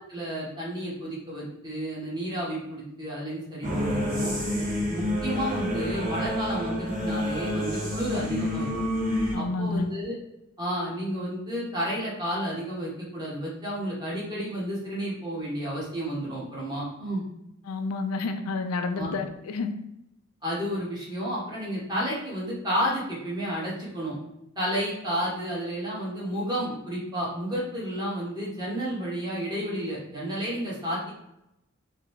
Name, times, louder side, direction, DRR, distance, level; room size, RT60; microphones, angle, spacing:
voice 1, 0.1-4.3 4.9-8.8 9.3-10.2 10.6-17.2 18.9-19.2 20.4-24.2 24.6-31.1, equal, 20° right, -6 dB, 1.1 m, -31 dB
sound 1, 3.6-9.4, left 1 dB, 40° right, 0.8 m, -28 dB
voice 2, 9.3-9.9 17.7-19.7, left 3 dB, 90° left, 7 dB, 0.4 m, -29 dB
3.7 x 2.1 x 3.0 m, 0.84 s
head